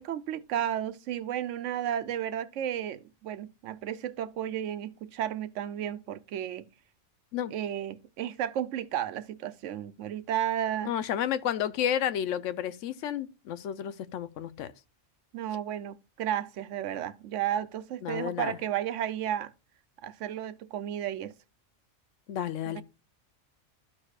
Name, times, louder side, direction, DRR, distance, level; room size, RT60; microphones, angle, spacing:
voice 1, 0.0-6.6 7.5-10.9 15.3-19.5 20.0-21.3 22.7-22.8, right 10 dB, 85° right, 1.0 m, -33 dB
voice 2, 10.8-14.7 18.0-18.6 22.3-22.8, left 10 dB, 90° left, 1.0 m, -31 dB
13.0 x 4.9 x 2.4 m
omnidirectional pair, 1.2 m